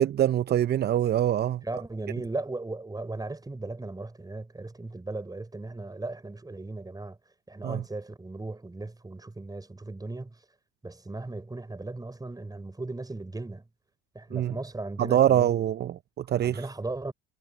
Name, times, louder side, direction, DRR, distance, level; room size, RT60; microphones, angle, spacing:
voice 1, 0.0-1.6 7.6-7.8 14.3-14.6 15.0-16.7, right 11 dB, 35° right, 0.6 m, -24 dB
voice 2, 1.6-7.2 7.5-10.3 10.8-13.6 14.1-15.6 16.4-17.1, right 2 dB, 15° right, 4.8 m, -37 dB
hypercardioid pair, 75°, 29 cm